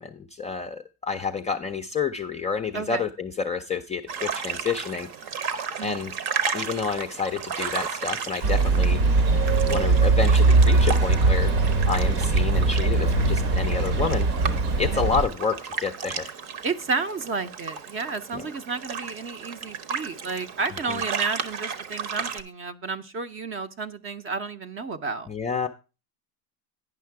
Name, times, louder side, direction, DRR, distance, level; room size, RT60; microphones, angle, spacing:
voice 1, 0.0-5.1 5.8-6.1 6.5-9.0 9.7-11.5 11.9-14.3 14.8-16.3 18.3-18.4 20.9-21.0 25.3-25.7, left 5 dB, 15° left, 5 dB, 0.3 m, -29 dB
sound 1, 4.1-22.4, right 6 dB, 55° right, 1.0 m, -34 dB
sound 2, 8.4-15.3, right 3 dB, 75° right, 1.5 m, -20 dB
voice 2, 16.6-25.3, right 4 dB, 30° right, 13 dB, 0.6 m, -31 dB
9.6 x 5.6 x 4.6 m, 0.31 s
supercardioid pair, 105°, 45 cm